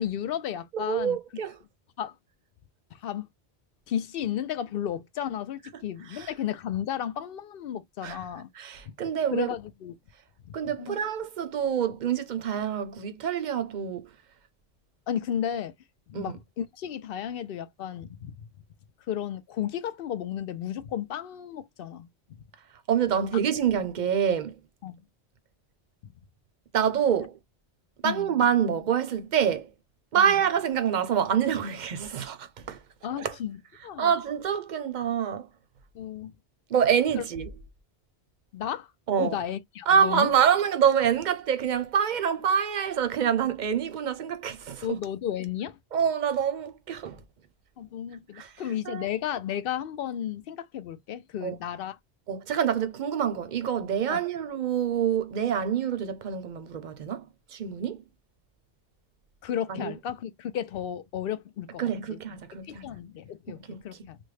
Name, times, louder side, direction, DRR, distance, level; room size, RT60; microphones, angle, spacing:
voice 1, 0.0-1.2 2.0-2.1 2.9-3.3 3.9-8.5 9.3-9.9 10.8-11.0 15.1-15.7 16.1-18.5 19.1-22.1 24.8-25.0 28.0-28.3 30.1-30.4 33.0-33.6 33.8-34.1 35.9-36.3 37.2-37.3 38.5-38.9 39.2-40.3 44.8-45.8 47.8-52.0 54.1-54.2 59.4-61.8 62.1-62.2 62.6-64.2, left 10 dB, 65° left, 0.7 m, -33 dB
voice 2, 0.7-1.5 6.1-6.3 8.0-8.2 8.6-9.5 10.5-14.1 16.1-16.4 22.9-24.6 26.7-27.4 28.0-29.7 30.1-32.8 33.2-33.4 34.0-35.5 36.7-37.5 39.1-39.4 39.9-45.0 45.9-47.2 48.3-48.5 48.9-49.1 51.4-51.6 52.3-57.2 57.5-58.0 59.7-59.9 61.8-62.9 63.7-63.8, right 8 dB, 50° right, 0.7 m, -26 dB
3.4 x 2.1 x 3.2 m
omnidirectional pair, 1.1 m